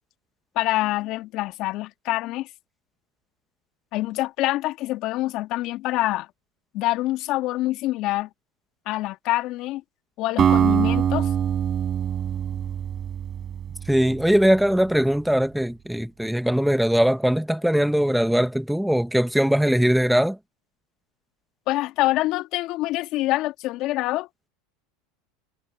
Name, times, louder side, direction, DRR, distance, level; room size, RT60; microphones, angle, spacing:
voice 1, 0.6-2.5 3.9-6.3 6.7-8.3 8.9-9.8 10.2-11.3 21.7-24.3, left 17 dB, 55° left, 2.2 m, -25 dB
Acoustic guitar, 10.4-14.5, right 9 dB, 35° right, 4.6 m, -23 dB
voice 2, 13.9-20.4, equal, ahead, 1.5 m, -21 dB
hypercardioid pair, 100°, 0 cm